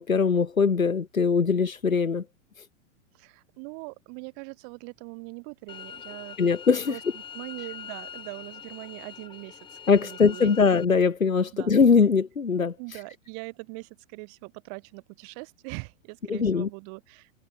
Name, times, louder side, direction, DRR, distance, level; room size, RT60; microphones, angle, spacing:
voice 1, 0.0-2.2 6.4-7.0 9.9-12.8 16.3-16.7, left 5 dB, 90° left, 0.8 m, -21 dB
voice 2, 3.1-6.4 6.9-10.7 11.5-11.7 12.8-17.3, right 40 dB or more, 35° right, 2.5 m, -42 dB
sound 1, 5.7-10.9, left 8 dB, 10° left, 1.2 m, -43 dB
figure-of-eight pair, 105°, 40 cm